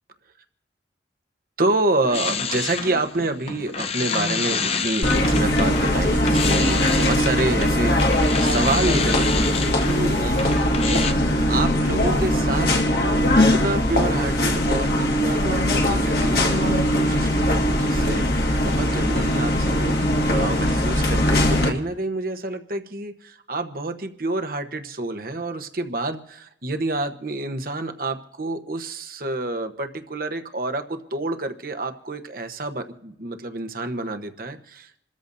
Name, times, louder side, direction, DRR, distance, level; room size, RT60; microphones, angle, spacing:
voice 1, 1.6-11.1 11.5-12.7 13.4-35.0, right 2 dB, 50° right, 7 dB, 1.0 m, -28 dB
sound 1, 1.7-11.1, left 5 dB, 35° left, 0.7 m, -29 dB
sound 2, 5.0-21.7, left 1 dB, 55° left, 1.9 m, -20 dB
27.5 x 14.0 x 2.7 m, 0.80 s
head